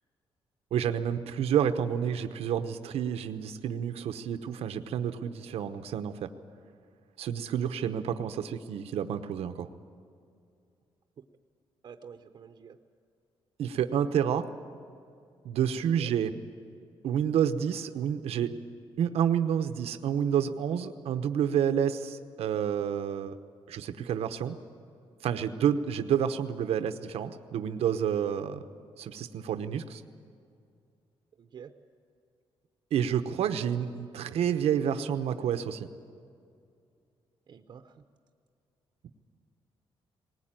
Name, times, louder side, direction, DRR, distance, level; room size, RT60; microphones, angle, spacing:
voice 1, 0.7-6.3 7.2-9.7 13.6-14.5 15.4-16.3 17.0-18.5 19.0-23.4 23.7-24.6 25.2-28.6 29.0-30.0 32.9-35.9, right 8 dB, 85° right, 8 dB, 0.9 m, -29 dB
voice 2, 11.8-12.8 15.8-16.1 31.4-31.7 37.5-38.0, right 7 dB, 45° right, 6 dB, 0.8 m, -48 dB
20.0 x 19.0 x 8.9 m, 2.4 s
wide cardioid pair, 165°, 10 cm